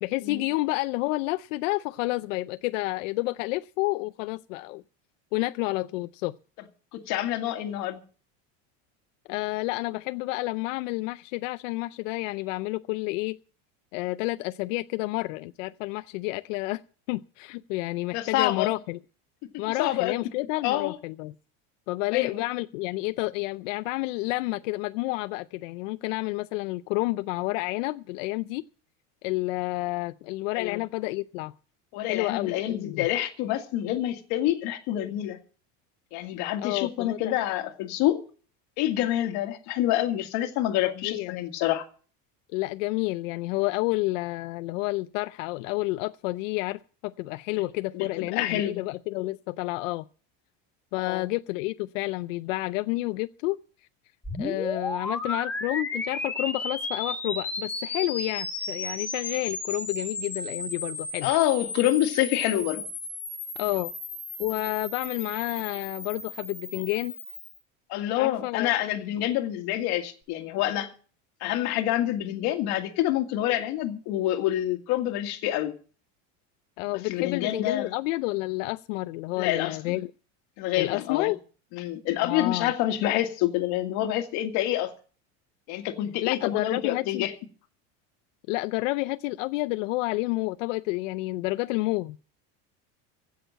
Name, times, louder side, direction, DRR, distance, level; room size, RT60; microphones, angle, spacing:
voice 1, 0.0-4.8 5.3-6.4 9.3-13.4 13.9-16.8 17.1-19.0 19.6-21.3 21.9-28.6 29.2-31.5 32.0-33.1 36.6-37.3 40.8-41.3 42.5-50.0 50.9-53.6 54.4-61.3 63.6-63.9 64.4-67.1 68.2-68.7 76.8-80.1 80.8-81.4 82.2-82.7 86.2-87.3 88.5-92.2, left 21 dB, 85° left, 0.6 m, -30 dB
voice 2, 6.9-8.0 18.1-18.7 19.8-20.2 20.6-21.0 22.1-22.4 30.5-30.8 31.9-35.4 36.1-38.2 38.8-41.9 47.5-47.6 47.9-48.8 51.0-51.3 61.2-62.8 67.9-70.9 71.4-75.7 77.1-77.9 79.4-80.0 80.6-81.3 81.7-84.9 85.7-87.3, left 13 dB, 50° left, 2.0 m, -27 dB
sound 1, 54.2-67.6, left 3 dB, 5° left, 1.2 m, -34 dB
16.0 x 6.7 x 8.9 m
cardioid pair, 180°, 37 cm